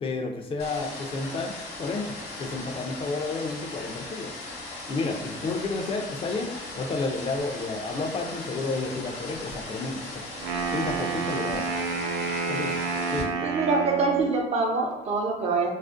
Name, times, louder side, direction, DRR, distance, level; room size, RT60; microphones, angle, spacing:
voice 1, 0.0-1.5 1.8-4.3 4.9-10.2 10.7-11.8 12.5-12.8 13.1-13.3, left 3 dB, 35° left, 3 dB, 0.4 m, -31 dB
sound 1, 0.6-13.2, left 2 dB, 70° left, 0.8 m, -38 dB
Wind instrument woodwind instrument, 10.3-14.3, right 5 dB, 85° right, 0.4 m, -29 dB
voice 2, 13.4-15.7, right 4 dB, 40° right, 0 dB, 0.6 m, -25 dB
2.4 x 2.0 x 2.5 m, 1.1 s
cardioid pair, 110°, 17 cm